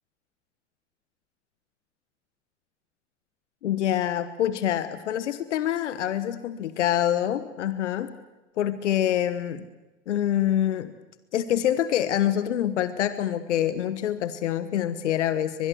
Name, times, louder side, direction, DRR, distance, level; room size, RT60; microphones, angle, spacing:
voice 1, 3.6-8.1 8.6-9.7 10.1-10.9 11.3-15.7, left 11 dB, 80° left, 13 dB, 1.4 m, -26 dB
24.0 x 21.0 x 8.0 m, 1.1 s
hypercardioid pair, 80°, 35 cm